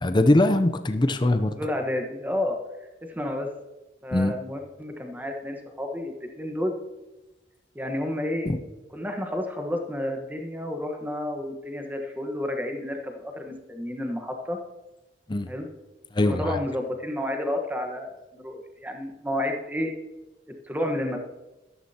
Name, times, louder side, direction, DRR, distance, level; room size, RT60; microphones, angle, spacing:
voice 1, 0.0-1.5 4.1-4.3 8.5-8.6 15.3-15.5 16.2-16.6, left 1 dB, 25° left, 9 dB, 0.6 m, -21 dB
voice 2, 1.5-2.6 3.1-3.5 4.0-6.8 7.7-8.5 8.9-14.6 15.5-15.7 16.2-19.9 20.7-21.2, left 1 dB, 10° right, 4 dB, 1.2 m, -30 dB
13.5 x 13.0 x 2.9 m, 1.1 s
head